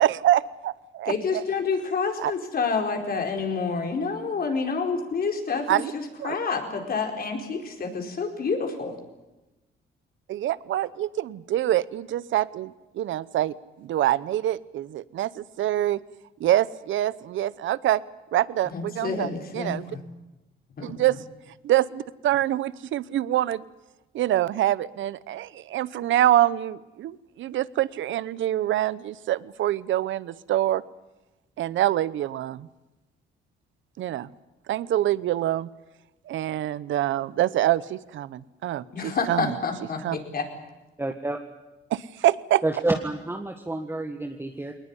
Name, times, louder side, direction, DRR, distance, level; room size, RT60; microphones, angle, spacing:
voice 1, 0.0-1.4 2.2-2.3 5.7-5.9 6.2-6.3 10.3-16.0 16.4-18.0 18.3-19.9 20.8-21.2 21.6-23.6 24.1-30.8 31.6-32.7 34.0-34.3 34.7-35.7 36.3-39.6 40.0-40.2 41.9-42.6, right 13 dB, 75° right, 19 dB, 0.8 m, -25 dB
voice 2, 1.0-8.9 18.7-20.0 20.8-20.9 38.9-40.5, left 4 dB, 50° left, 3 dB, 4.8 m, -28 dB
voice 3, 41.0-41.4 42.6-44.7, right 2 dB, 10° right, 4 dB, 1.6 m, -28 dB
21.0 x 19.5 x 9.9 m, 1.0 s
cardioid pair, 90°, 20 cm